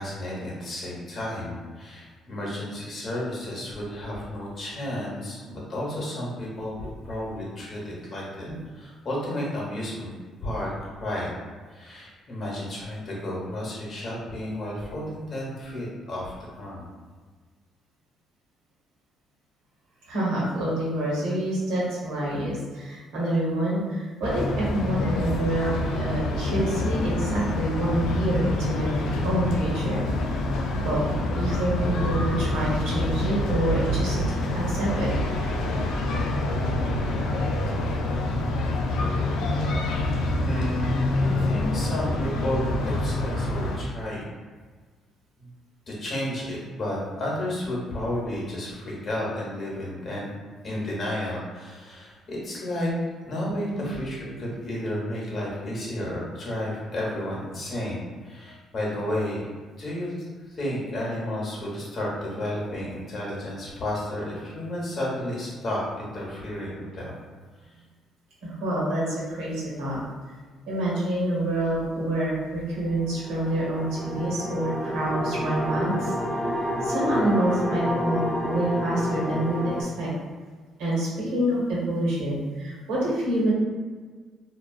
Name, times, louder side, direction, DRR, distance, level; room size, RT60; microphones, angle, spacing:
voice 1, 0.0-8.5 8.7-10.1 10.4-11.3 11.7-16.9 40.4-44.2 45.4-45.5 45.9-50.3 50.6-52.9 53.3-59.5 59.8-60.1 60.5-67.1, left 1 dB, 50° left, -4 dB, 0.9 m, -32 dB
voice 2, 20.1-30.0 30.8-31.0 31.3-35.1 68.4-70.0 70.7-80.1 80.8-83.5, right 1 dB, 85° right, -7 dB, 0.9 m, -27 dB
sound 1, 24.2-43.8, left 1 dB, 80° left, 0.3 m, -26 dB
sound 2, 73.0-79.8, equal, 5° left, 0.6 m, -29 dB
2.3 x 2.3 x 2.3 m, 1.5 s
supercardioid pair, 70°, 0 cm